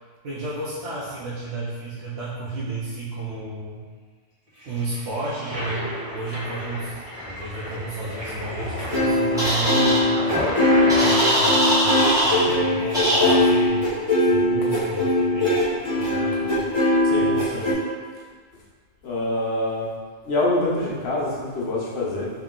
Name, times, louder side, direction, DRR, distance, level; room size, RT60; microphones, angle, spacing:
voice 1, 0.2-3.9 4.6-6.9 7.2-10.5 11.0-13.8 14.2-15.6 15.9-16.7 17.2-17.7, right 2 dB, 75° right, -8 dB, 0.9 m, -32 dB
Toilet flush, 4.6-13.7, left 1 dB, 30° right, 1.3 m, -32 dB
sound 1, 8.9-17.7, left 1 dB, 30° left, 0.8 m, -20 dB
sound 2, 9.4-10.0 10.9-12.4 12.9-13.3, equal, 5° right, 1.3 m, -21 dB
voice 2, 17.0-17.7 19.0-19.9 20.2-22.3, left 1 dB, 70° left, -5 dB, 1.1 m, -25 dB
3.4 x 2.9 x 3.7 m, 1.5 s
omnidirectional pair, 1.1 m